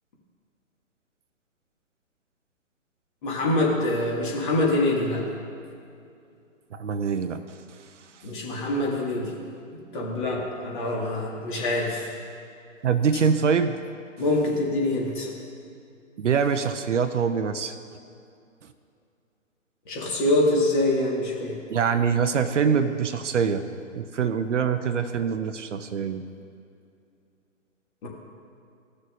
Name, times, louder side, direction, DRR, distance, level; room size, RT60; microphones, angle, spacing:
voice 1, 3.2-5.2 8.2-9.3 9.9-12.1 14.2-15.3 19.9-21.6 28.0-28.1, left 2 dB, 35° left, -3 dB, 2.2 m, -25 dB
voice 2, 6.7-7.4 12.8-13.7 16.2-17.7 21.7-23.6 23.9-26.2, right 6 dB, 65° right, 9 dB, 0.7 m, -24 dB
16.0 x 6.5 x 2.6 m, 2.5 s
figure-of-eight pair, 140°, 40 cm